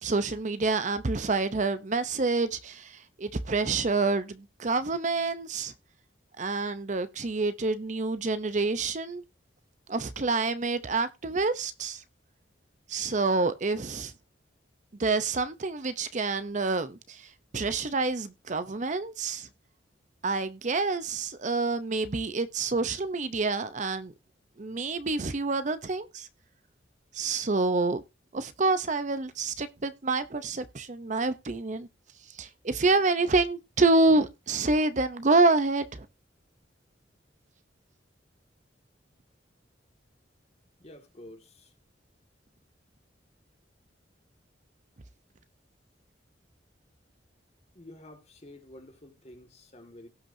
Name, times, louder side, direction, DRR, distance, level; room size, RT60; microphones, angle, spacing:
voice 1, 0.0-5.7 6.4-9.2 9.9-12.0 12.9-14.1 15.0-17.3 17.5-19.5 20.2-24.1 24.6-26.3 27.1-28.0 28.3-31.9 32.4-36.1, right 3 dB, 40° right, 0.7 m, -27 dB
voice 2, 40.8-41.7 47.7-50.1, left 1 dB, 35° left, 2.0 m, -49 dB
17.5 x 5.8 x 2.7 m
head